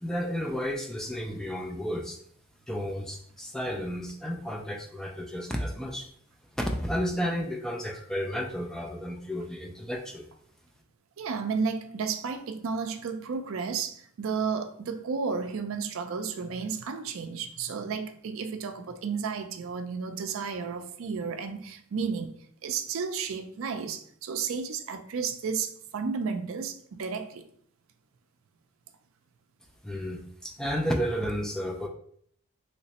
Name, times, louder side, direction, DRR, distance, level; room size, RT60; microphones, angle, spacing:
voice 1, 0.0-2.2 2.7-6.1 6.5-10.3 29.8-31.9, equal, 5° left, 0.3 m, -32 dB
voice 2, 11.2-22.3 22.6-27.4, right 5 dB, 75° right, 0.4 m, -32 dB
3.2 x 3.0 x 2.8 m
head